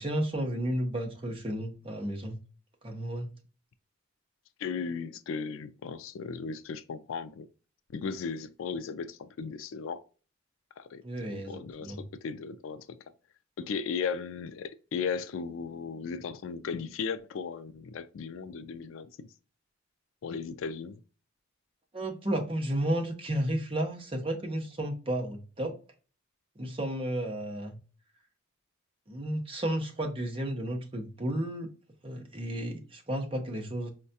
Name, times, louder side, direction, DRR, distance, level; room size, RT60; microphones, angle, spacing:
voice 1, 0.0-2.4 2.8-3.3 11.0-12.0 21.9-25.8 26.6-27.8 29.1-31.7 32.0-33.9, right 1 dB, 25° right, 0.7 m, -32 dB
voice 2, 4.6-7.5 7.9-10.0 10.8-11.0 11.4-13.0 13.6-19.1 20.2-21.0, left 5 dB, 70° left, 0.3 m, -36 dB
4.6 x 2.2 x 2.7 m
head